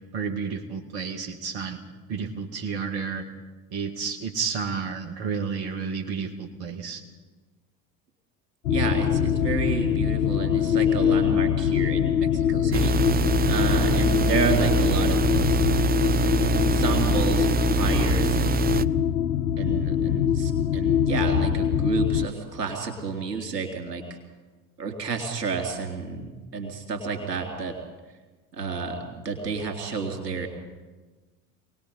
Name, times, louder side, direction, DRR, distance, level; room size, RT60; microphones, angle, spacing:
voice 1, 0.1-1.8 2.1-3.3 3.7-7.0, right 5 dB, 50° right, 3 dB, 2.2 m, -31 dB
sound 1, 8.6-22.3, left 9 dB, 85° left, 0.9 m, -23 dB
voice 2, 8.7-12.9 13.5-15.7 15.9-18.6 19.6-24.0 24.8-27.8 28.5-30.5, right 5 dB, 85° right, 3 dB, 3.3 m, -30 dB
sound 2, 12.7-18.9, right 5 dB, 20° right, 0.6 m, -24 dB
27.0 x 19.0 x 5.6 m, 1.3 s
figure-of-eight pair, 65°, 47 cm